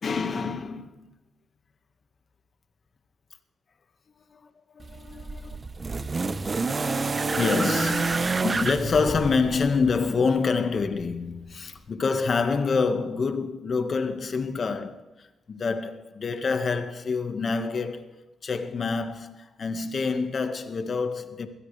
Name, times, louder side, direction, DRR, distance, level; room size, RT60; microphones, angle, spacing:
voice 1, 0.0-1.1 4.3-4.4 4.7-5.6 6.7-21.5, left 4 dB, 50° left, 1.8 m, -27 dB
sound 1, 4.8-10.0 11.1-11.2, right 4 dB, 35° right, 1.1 m, -28 dB
23.0 x 16.0 x 3.5 m
cardioid pair, 70°, 0 cm